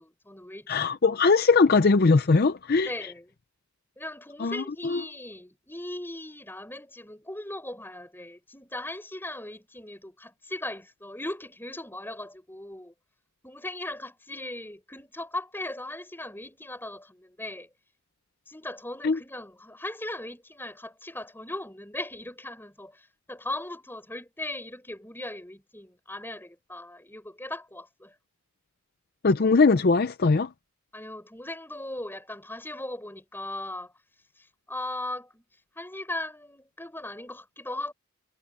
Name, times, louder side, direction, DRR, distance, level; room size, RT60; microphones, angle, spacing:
voice 1, 0.0-1.0 2.8-3.3 4.0-12.9 13.4-17.7 18.5-28.1 30.9-33.9 34.3-35.4 35.7-37.9, left 1 dB, 10° left, 4.9 m, -38 dB
voice 2, 0.7-2.9 4.4-5.0 19.0-19.2 29.2-30.5, left 4 dB, 45° left, 0.5 m, -21 dB
head